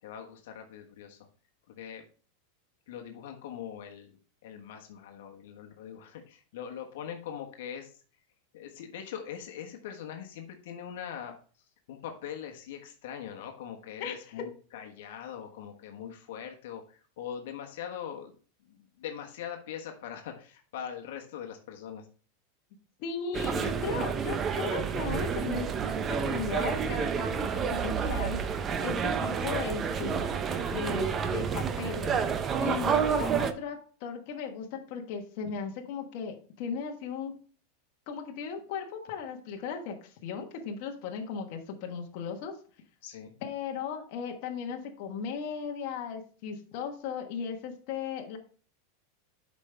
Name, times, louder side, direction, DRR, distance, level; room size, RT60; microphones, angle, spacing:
voice 1, 0.0-1.3 1.7-2.1 2.9-8.0 8.5-18.3 18.6-22.1 43.0-43.3, left 9 dB, 70° left, 3 dB, 1.2 m, -42 dB
voice 2, 14.0-14.4 23.0-30.2 30.7-32.2 32.6-37.3 38.1-42.5 43.4-48.4, left 6 dB, 50° left, 2 dB, 1.3 m, -36 dB
sound 1, 23.3-33.5, right 7 dB, 20° right, 0.6 m, -29 dB
8.2 x 5.4 x 3.4 m, 0.40 s
supercardioid pair, 155°, 0 cm